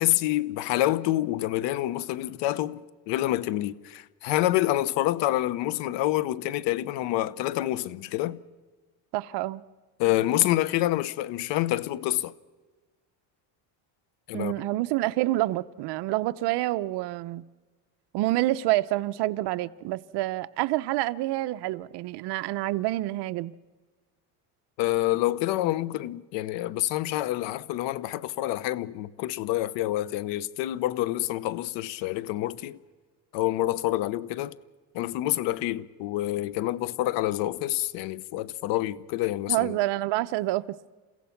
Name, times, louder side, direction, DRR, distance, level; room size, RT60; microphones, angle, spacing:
voice 1, 0.0-8.4 10.0-12.3 14.3-14.5 24.8-32.8 33.3-34.6 34.9-39.7, left 15 dB, 70° left, 1.0 m, -27 dB
voice 2, 9.1-9.6 14.3-17.4 18.1-23.5 39.5-40.6, right 17 dB, 65° right, 0.9 m, -27 dB
30.0 x 16.0 x 5.9 m
cardioid pair, 140°, 44 cm